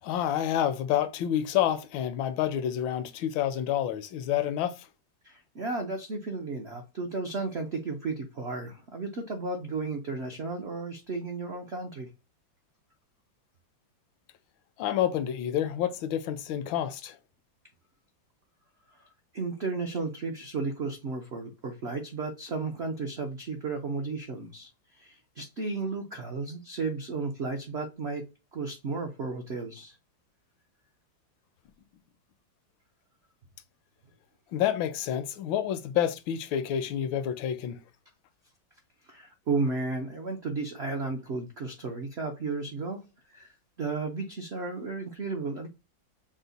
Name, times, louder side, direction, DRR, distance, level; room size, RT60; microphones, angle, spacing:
voice 1, 0.0-4.9 14.8-17.2 34.5-37.8, left 10 dB, 80° left, 1.3 m, -28 dB
voice 2, 5.2-12.1 18.9-19.1 19.3-30.0 39.1-43.0 43.3-45.7, right 3 dB, 75° right, 0.6 m, -34 dB
6.3 x 2.1 x 4.0 m
omnidirectional pair, 2.1 m